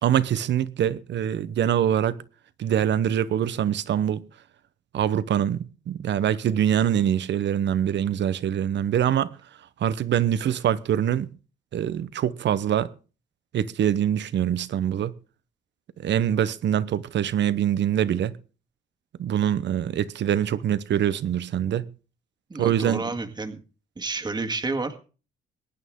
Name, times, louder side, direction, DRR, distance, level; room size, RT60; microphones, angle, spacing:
voice 1, 0.0-2.2 2.6-4.2 4.9-9.4 9.8-11.3 11.7-12.9 13.5-15.1 16.0-18.3 19.2-21.9 22.6-23.0, right 10 dB, 65° right, 0.9 m, -24 dB
voice 2, 22.5-23.6 24.0-25.0, right 3 dB, 20° right, 1.9 m, -30 dB
22.5 x 9.1 x 3.7 m
cardioid pair, 90°, 20 cm